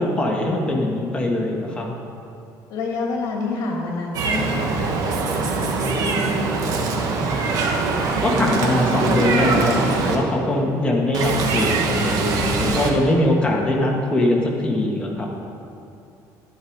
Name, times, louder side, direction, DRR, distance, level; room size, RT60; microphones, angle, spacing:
voice 1, 0.0-1.9 8.2-15.3, left 1 dB, 15° left, -1 dB, 1.6 m, -21 dB
voice 2, 2.7-7.1, left 3 dB, 60° left, 0 dB, 2.4 m, -29 dB
Meow, 4.1-10.2 11.1-12.9, right 4 dB, 60° right, 1.4 m, -22 dB
11.0 x 10.5 x 4.7 m, 2.6 s
cardioid pair, 150°, 7 cm